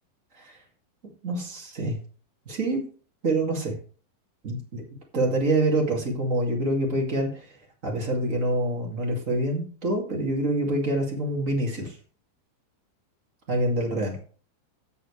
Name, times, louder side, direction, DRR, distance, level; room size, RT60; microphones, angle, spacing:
voice 1, 1.2-2.0 2.4-2.8 3.2-3.7 4.4-4.8 5.1-7.4 7.8-11.9 13.5-14.2, right 1 dB, 50° right, -1 dB, 0.9 m, -26 dB
15.5 x 6.9 x 3.3 m, 0.40 s
omnidirectional pair, 5.6 m